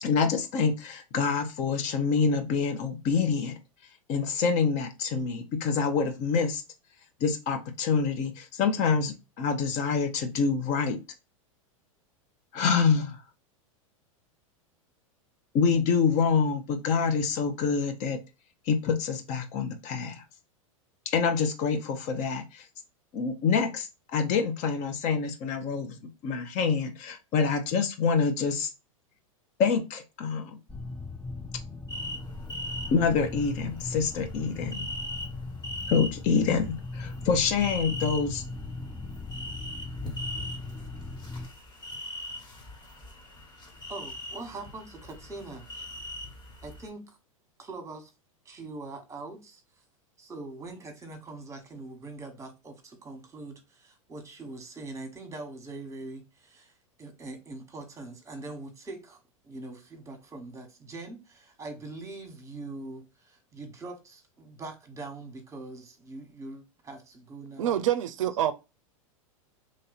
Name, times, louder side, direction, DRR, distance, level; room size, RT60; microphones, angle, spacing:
voice 1, 0.0-3.6 4.1-6.6 7.2-11.0 12.5-13.2 15.5-18.2 18.7-20.2 21.1-22.6 23.1-26.0 26.2-28.7 29.6-30.6 32.9-34.9 35.9-38.4, left 5 dB, 45° left, 0.8 m, -26 dB
sound 1, 30.7-41.5, left 3 dB, 10° left, 0.3 m, -38 dB
sound 2, 31.9-46.9, equal, 25° left, 1.4 m, -41 dB
voice 2, 43.9-45.9 46.6-47.2 47.6-48.1 48.4-49.8 50.2-67.8, right 2 dB, 15° right, 1.2 m, -43 dB
voice 3, 67.6-68.5, right 11 dB, 65° right, 0.5 m, -26 dB
3.2 x 2.6 x 4.0 m
hypercardioid pair, 95°, 18 cm